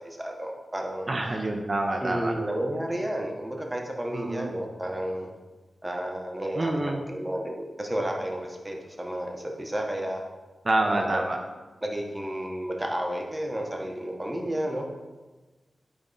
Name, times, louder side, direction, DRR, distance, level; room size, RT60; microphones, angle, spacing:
voice 1, 0.0-1.1 2.0-5.3 5.8-10.2 10.8-11.3 11.8-14.8, right 1 dB, 10° right, 1 dB, 1.0 m, -32 dB
voice 2, 1.1-2.3 4.1-4.5 6.5-7.0 10.6-11.4, right 2 dB, 40° right, 2 dB, 0.6 m, -27 dB
8.9 x 3.5 x 4.0 m, 1.2 s
wide cardioid pair, 85°, 0 cm